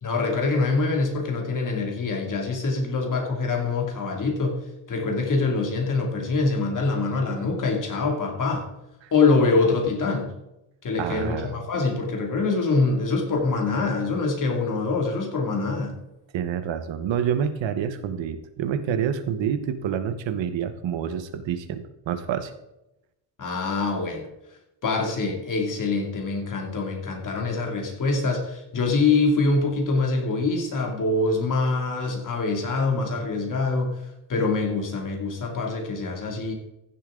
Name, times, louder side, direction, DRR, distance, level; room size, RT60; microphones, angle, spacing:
voice 1, 0.0-4.6 4.9-8.7 9.1-10.3 10.8-15.9 23.4-24.3 24.8-34.0 34.3-36.5, left 3 dB, 45° left, 1 dB, 2.5 m, -24 dB
voice 2, 11.0-11.5 16.3-22.5, right 8 dB, 85° right, 10 dB, 1.1 m, -28 dB
15.5 x 7.2 x 3.7 m, 0.89 s
cardioid pair, 140°, 44 cm